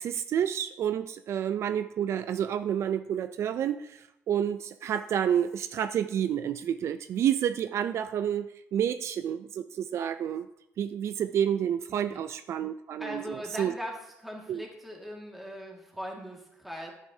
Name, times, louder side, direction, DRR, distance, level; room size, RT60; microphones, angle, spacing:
voice 1, 0.0-10.5 10.8-13.7 14.5-14.6, right 9 dB, 65° right, 11 dB, 0.4 m, -29 dB
voice 2, 11.9-12.2 13.0-16.9, equal, 5° right, -1 dB, 1.9 m, -40 dB
10.5 x 8.7 x 2.7 m, 0.83 s
cardioid pair, 135°, 5 cm